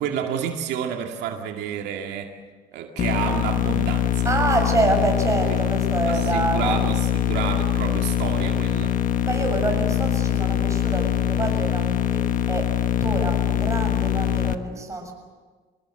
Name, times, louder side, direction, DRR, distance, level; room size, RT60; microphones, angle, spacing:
voice 1, 0.0-2.3 2.7-4.3 5.5-5.6 6.1-8.9, right 8 dB, 85° right, 3 dB, 2.3 m, -30 dB
sound 1, 3.0-14.5, left 10 dB, 50° left, 1.3 m, -23 dB
voice 2, 4.2-6.8 9.2-12.2 12.5-15.1, right 2 dB, 20° right, 3 dB, 6.8 m, -26 dB
25.5 x 19.5 x 7.9 m, 1.4 s
cardioid pair, 110°, 17 cm